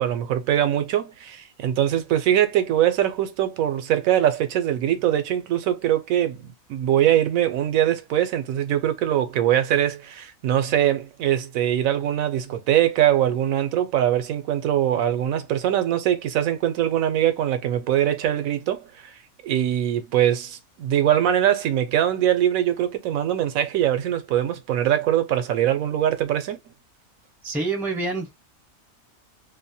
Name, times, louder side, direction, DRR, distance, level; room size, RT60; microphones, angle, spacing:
voice 1, 0.0-26.6, right 11 dB, 75° right, 1.0 m, -22 dB
voice 2, 27.4-28.4, right 3 dB, ahead, 0.5 m, -27 dB
2.7 x 2.1 x 2.6 m
omnidirectional pair, 1.5 m